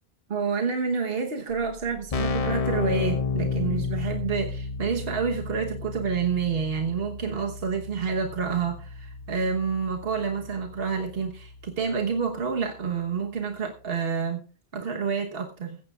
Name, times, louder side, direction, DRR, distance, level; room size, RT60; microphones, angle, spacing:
voice 1, 0.3-14.5 14.7-15.8, right 5 dB, 70° right, 2 dB, 1.4 m, -28 dB
Keyboard (musical), 1.5-1.6 1.8-12.4, left 5 dB, 40° left, 0.7 m, -33 dB
16.0 x 15.0 x 2.4 m, 0.36 s
omnidirectional pair, 1.0 m